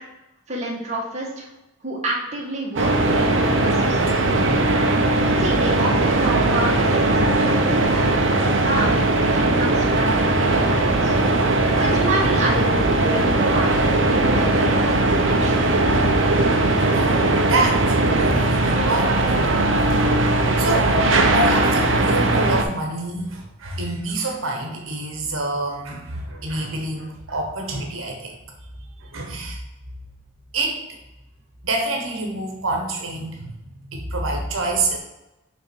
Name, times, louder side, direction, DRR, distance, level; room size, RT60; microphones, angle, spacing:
voice 1, 0.5-1.5 1.8-4.3 5.4-9.0 9.3-11.2 11.7-13.8 14.1-15.7, right 1 dB, 35° right, -3 dB, 1.6 m, -29 dB
sound 1, 2.8-22.6, right 2 dB, 65° right, 0.8 m, -19 dB
voice 2, 16.8-19.2 20.6-28.3 29.0-29.6 30.5-30.8 31.6-33.5 33.9-35.0, right 2 dB, 90° right, 1 dB, 1.1 m, -27 dB
5.9 x 3.6 x 6.1 m, 0.97 s
head